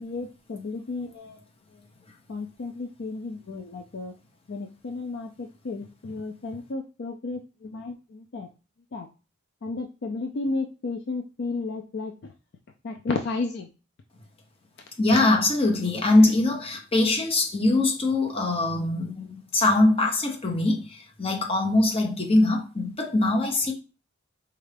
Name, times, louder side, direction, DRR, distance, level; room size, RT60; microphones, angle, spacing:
voice 1, 0.0-1.4 2.3-4.1 4.5-8.5 8.9-9.1 9.6-12.1 12.8-13.7 16.2-16.3, left 3 dB, 55° left, 0.4 m, -33 dB
voice 2, 15.0-23.7, left 2 dB, 25° left, 0.8 m, -22 dB
4.3 x 2.4 x 3.3 m
head